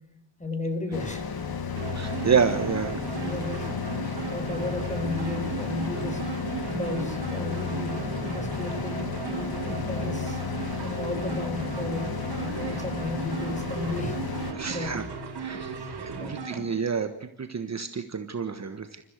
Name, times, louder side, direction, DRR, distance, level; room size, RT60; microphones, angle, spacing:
voice 1, 0.4-1.2 3.2-3.7 4.1-6.2 6.7-10.4 10.8-12.1 12.4-14.2 14.7-15.0 15.8-16.3, left 2 dB, 15° left, 5 dB, 5.4 m, -34 dB
sound 1, 0.9-14.5, left 6 dB, 50° left, 2.3 m, -33 dB
sound 2, 1.8-16.6, right 5 dB, 60° right, 6.7 m, -36 dB
voice 2, 1.9-3.0 12.6-12.8 14.5-15.0 15.4-19.0, right 6 dB, 35° right, 8 dB, 1.4 m, -29 dB
28.5 x 14.5 x 6.6 m, 0.84 s
wide cardioid pair, 120°, 45 cm